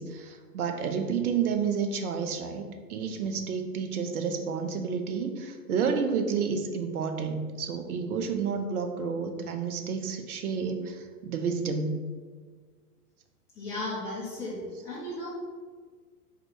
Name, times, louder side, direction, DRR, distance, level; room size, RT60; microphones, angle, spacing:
voice 1, 0.0-12.0, right 6 dB, 65° right, 5 dB, 0.7 m, -30 dB
voice 2, 13.6-15.3, left 2 dB, 5° left, -9 dB, 0.3 m, -35 dB
3.8 x 2.8 x 4.7 m, 1.6 s
figure-of-eight pair, 100°, 48 cm